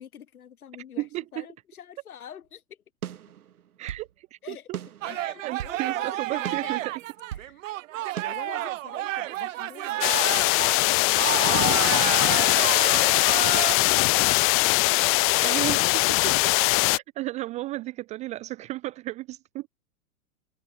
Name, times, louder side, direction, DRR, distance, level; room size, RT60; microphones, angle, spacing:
voice 1, 0.0-2.8 4.4-4.7 5.0-6.8 7.3-7.6 8.2-15.2, left 9 dB, 70° left, 5.2 m, -45 dB
voice 2, 1.0-1.4 3.8-4.8 5.4-6.8 15.4-16.5 16.9-19.7, right 17 dB, 15° right, 0.4 m, -34 dB
sound 1, 3.0-4.1 4.7-5.8 6.4-7.5 8.2-8.3, right 10 dB, 75° right, 1.3 m, -38 dB
sound 2, 5.0-13.7, right 15 dB, 60° right, 0.7 m, -31 dB
sound 3, 10.0-17.0, left 28 dB, 30° left, 0.7 m, -21 dB
figure-of-eight pair, 100°, 45 cm